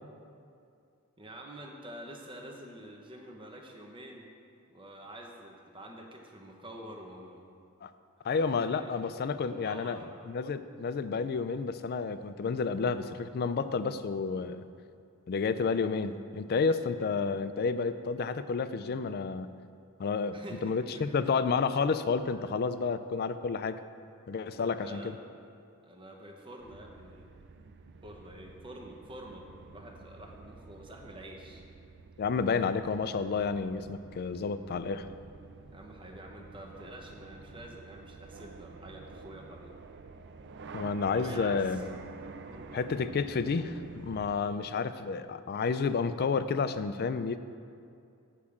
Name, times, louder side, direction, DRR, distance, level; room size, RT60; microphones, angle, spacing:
voice 1, 1.2-4.3 4.7-7.5 8.7-9.0 9.4-10.0 20.3-21.3 24.5-25.2 25.8-27.3 28.0-31.6 34.3-34.5 35.7-39.7 41.1-41.8 42.4-42.7, right 1 dB, 25° right, 1 dB, 0.9 m, -47 dB
voice 2, 8.2-10.0 10.3-14.6 15.3-19.5 20.0-23.8 24.3-25.2 32.2-35.1 40.7-41.9 42.7-47.4, left 5 dB, 45° left, 12 dB, 0.4 m, -30 dB
sound 1, 26.6-44.3, right 4 dB, 55° right, 0.4 m, -49 dB
8.5 x 4.9 x 7.1 m, 2.4 s
head